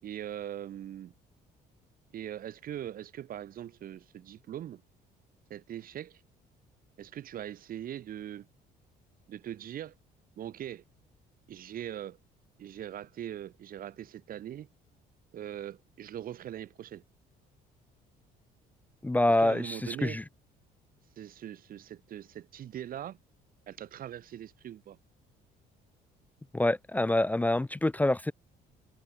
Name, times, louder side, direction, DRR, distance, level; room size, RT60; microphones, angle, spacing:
voice 1, 0.0-1.1 2.1-4.8 5.5-6.2 7.0-8.5 9.3-9.9 10.4-10.8 11.5-12.2 12.6-14.7 15.3-17.0 19.3-20.2 21.2-23.2 23.7-25.0, right 11 dB, 55° right, 2.4 m, -41 dB
voice 2, 19.0-20.2 26.5-28.3, left 1 dB, 10° left, 0.8 m, -26 dB
cardioid pair, 110°, 17 cm